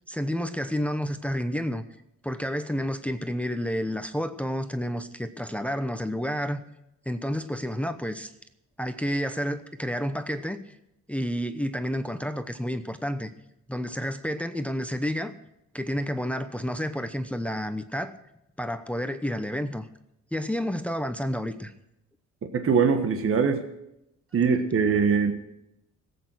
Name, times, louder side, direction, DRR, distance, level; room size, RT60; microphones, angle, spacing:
voice 1, 0.1-1.8 2.2-6.6 7.1-8.3 8.8-10.8 11.1-13.3 13.7-15.3 15.7-18.2 18.6-19.9 20.3-21.7, equal, 5° left, 9 dB, 0.8 m, -30 dB
voice 2, 22.5-23.6 24.3-25.3, right 5 dB, 45° right, 7 dB, 1.5 m, -22 dB
17.0 x 8.5 x 6.2 m, 0.84 s
cardioid pair, 90°, 30 cm